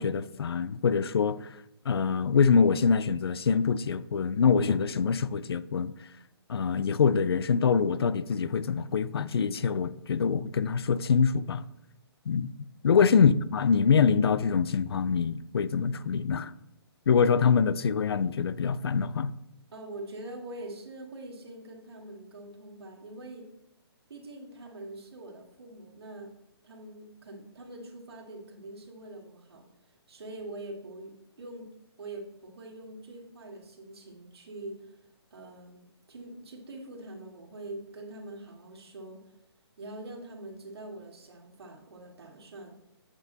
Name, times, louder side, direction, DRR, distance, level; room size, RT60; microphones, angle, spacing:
voice 1, 0.0-1.5 1.9-5.9 6.5-11.6 12.3-12.5 12.8-16.5 17.1-19.3, left 6 dB, 65° left, 0.4 m, -25 dB
voice 2, 19.7-23.5 24.1-26.3 26.6-31.7 32.0-39.2 39.8-42.8, right 2 dB, 70° right, 2.0 m, -44 dB
8.2 x 5.4 x 3.9 m
hypercardioid pair, 180°, 14 cm